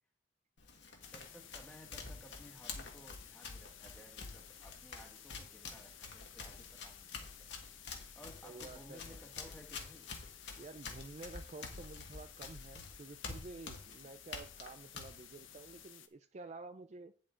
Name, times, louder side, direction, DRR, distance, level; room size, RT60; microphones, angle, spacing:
Run, 0.6-15.8, left 4 dB, 60° left, 1.8 m, -49 dB
sound 1, 1.0-16.1, left 10 dB, 80° left, 1.0 m, -56 dB
voice 1, 1.1-7.5 8.1-10.1 14.0-14.1, equal, 5° left, 2 dB, 1.7 m, -58 dB
voice 2, 8.4-9.2 10.6-17.1, right 3 dB, 35° right, 9 dB, 0.4 m, -51 dB
9.8 x 7.5 x 3.8 m, 0.43 s
head